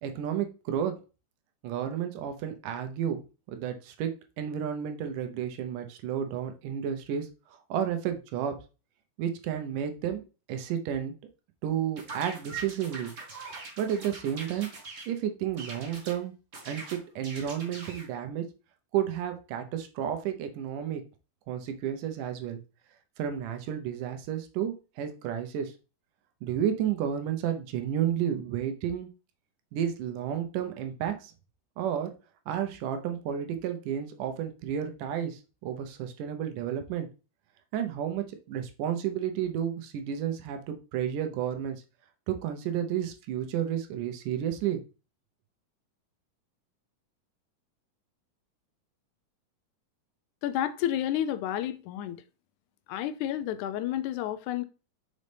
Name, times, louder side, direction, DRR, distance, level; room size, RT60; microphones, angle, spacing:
voice 1, 0.0-0.9 1.6-3.2 3.5-4.1 4.4-8.6 9.2-10.2 10.5-11.1 11.6-13.1 13.8-14.7 15.1-16.3 16.7-18.5 18.9-21.0 21.5-22.6 23.2-25.7 26.4-29.1 29.7-31.3 31.8-32.1 32.5-37.1 37.7-41.8 42.3-44.8, right 9 dB, 80° right, 2.3 m, -31 dB
sound 1, 12.0-15.1 15.6-16.2 16.5-18.1, right 3 dB, 60° right, 0.7 m, -43 dB
voice 2, 50.4-52.2 52.9-54.6, left 11 dB, 80° left, 1.8 m, -30 dB
5.5 x 5.2 x 3.3 m
omnidirectional pair, 3.8 m